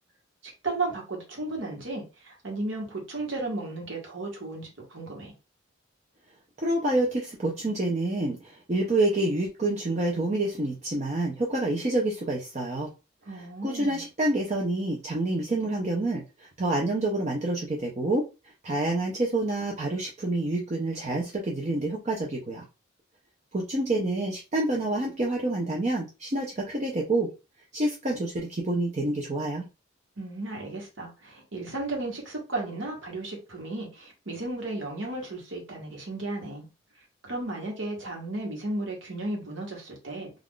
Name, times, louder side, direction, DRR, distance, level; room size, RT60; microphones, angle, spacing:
voice 1, 0.4-5.3 13.2-14.0 30.2-36.7 37.2-40.3, right 2 dB, 65° right, 1.2 m, -34 dB
voice 2, 6.6-12.9 13.6-18.2 18.6-22.6 23.5-27.3 27.7-29.6, right 2 dB, 35° right, 0.5 m, -27 dB
2.4 x 2.4 x 3.6 m
head